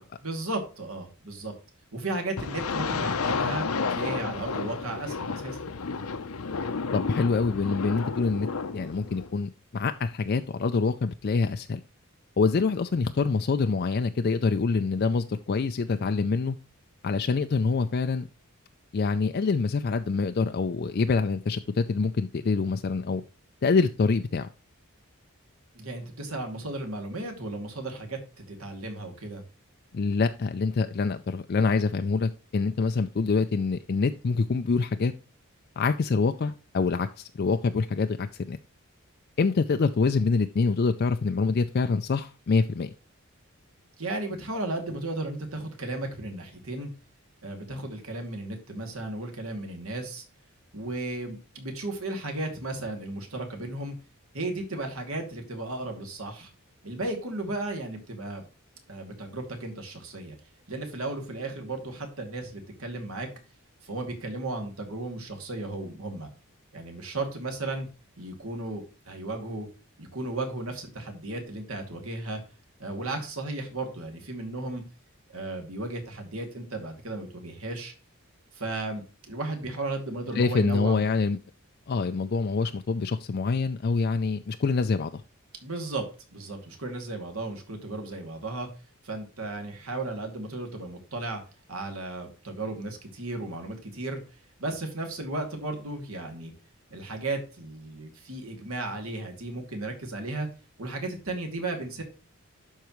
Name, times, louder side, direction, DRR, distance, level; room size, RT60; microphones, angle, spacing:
voice 1, 0.2-1.5 1.9-5.7 25.7-28.2 28.5-29.4 44.0-46.9 47.4-50.2 50.7-53.9 54.3-56.5 56.8-58.4 58.9-60.3 60.7-63.3 63.8-66.3 66.7-67.9 68.2-69.7 70.0-72.4 72.8-74.8 75.3-77.9 78.5-81.0 85.6-88.7 89.0-91.4 91.7-94.2 94.6-96.5 96.9-100.5 100.8-102.0, right 2 dB, 75° right, 2.4 m, -35 dB
sound 1, 2.4-9.3, left 4 dB, 80° left, 0.7 m, -31 dB
voice 2, 6.9-8.5 8.7-11.8 12.4-16.6 17.0-18.3 18.9-23.2 23.6-24.5 29.9-35.1 35.8-38.6 39.4-42.9 80.3-81.4 81.9-85.2, left 4 dB, 45° left, 0.4 m, -25 dB
12.0 x 4.6 x 3.1 m
head